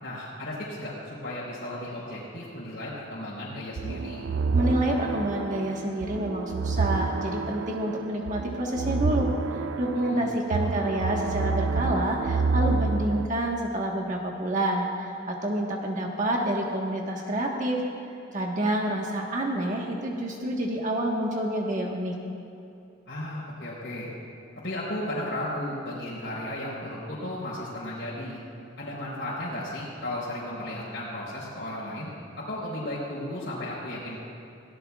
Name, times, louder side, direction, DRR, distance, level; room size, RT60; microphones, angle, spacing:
voice 1, 0.0-4.2 9.9-10.2 23.1-24.1 24.6-28.4 28.8-32.1 32.4-34.2, left 1 dB, 65° left, -9 dB, 4.1 m, -34 dB
sound 1, 3.8-13.3, right 4 dB, 75° right, 0.4 m, -29 dB
voice 2, 4.5-9.3 9.8-17.8 18.3-22.2, right 1 dB, 45° right, -1 dB, 1.4 m, -28 dB
23.5 x 17.5 x 2.4 m, 2.7 s
head